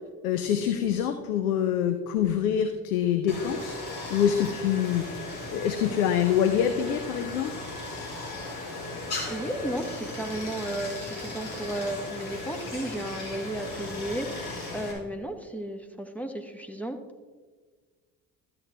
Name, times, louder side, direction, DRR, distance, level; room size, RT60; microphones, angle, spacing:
voice 1, 0.2-3.8 4.1-5.0 5.5-7.5, left 9 dB, 85° left, 8 dB, 0.6 m, -25 dB
Stream, 3.3-14.9, left 2 dB, 60° left, 2.6 m, -37 dB
voice 2, 9.3-17.0, right 1 dB, 5° left, 5 dB, 1.2 m, -34 dB
12.5 x 7.8 x 3.4 m, 1.4 s
hypercardioid pair, 50°, 43 cm